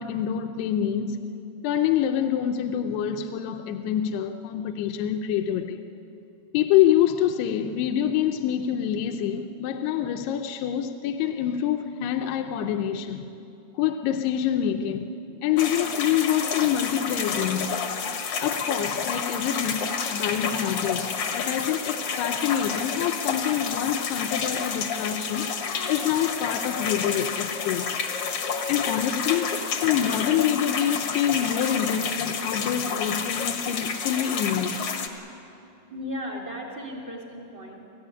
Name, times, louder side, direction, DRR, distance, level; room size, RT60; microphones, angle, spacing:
voice 1, 0.0-1.3 1.6-5.8 6.5-13.2 13.7-15.1 15.4-17.7 18.4-28.0 28.7-29.6 29.8-34.8, left 10 dB, 85° left, 2.8 m, -26 dB
sound 1, 15.6-35.1, left 6 dB, 55° left, 1.7 m, -29 dB
voice 2, 35.9-37.9, left 1 dB, 30° right, 2.7 m, -36 dB
24.5 x 15.0 x 9.9 m
omnidirectional pair, 4.7 m